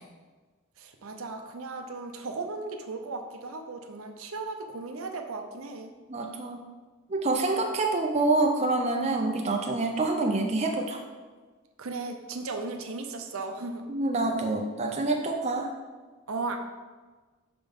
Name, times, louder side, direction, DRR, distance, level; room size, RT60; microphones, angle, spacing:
voice 1, 0.8-5.9 11.8-13.8 16.3-16.6, right 3 dB, 75° right, 5 dB, 0.6 m, -36 dB
voice 2, 6.1-6.6 7.1-11.0 13.9-15.7, right 2 dB, 30° right, 2 dB, 0.5 m, -27 dB
5.8 x 3.7 x 5.2 m, 1.3 s
head